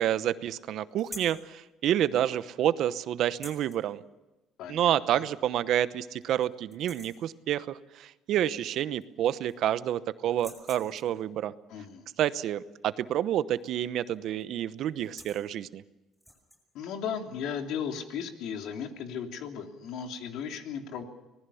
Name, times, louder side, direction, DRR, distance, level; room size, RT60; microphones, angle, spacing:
voice 1, 0.0-4.0 4.7-11.5 12.2-15.8, right 11 dB, 65° right, 14 dB, 0.9 m, -29 dB
sound 1, 1.0-1.4 3.3-3.8 5.2-5.3 5.7-5.8 6.2-6.5 6.7-7.3 8.6-8.7 9.0-9.7 10.3-11.2 13.6-13.9 14.2-14.4 14.9-15.5 16.1-16.6, equal, ahead, 7.7 m, -47 dB
voice 2, 4.6-5.2 11.7-12.1 16.7-21.0, left 7 dB, 75° left, 4 dB, 3.1 m, -36 dB
25.5 x 20.0 x 7.1 m, 1.0 s
cardioid pair, 115°, 0 cm